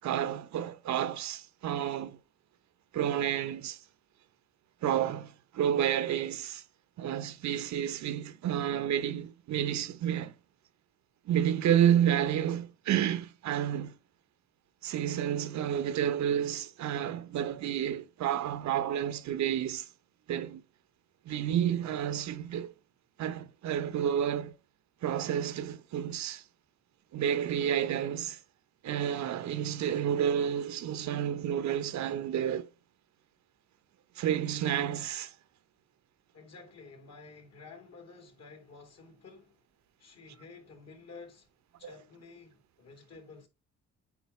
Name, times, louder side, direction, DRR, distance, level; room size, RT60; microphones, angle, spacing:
voice 1, 0.0-2.2 2.9-3.8 4.8-6.6 7.0-10.3 11.3-13.9 14.8-19.9 20.3-20.6 21.3-22.7 23.2-24.5 25.0-26.4 27.1-28.4 28.8-32.7 34.2-35.3 41.8-41.9, right 10 dB, 65° right, 0.7 m, -30 dB
voice 2, 36.3-39.6 40.0-41.5 41.8-43.5, left 4 dB, 60° left, 2.7 m, -51 dB
8.4 x 4.5 x 3.2 m
cardioid pair, 90°, 30 cm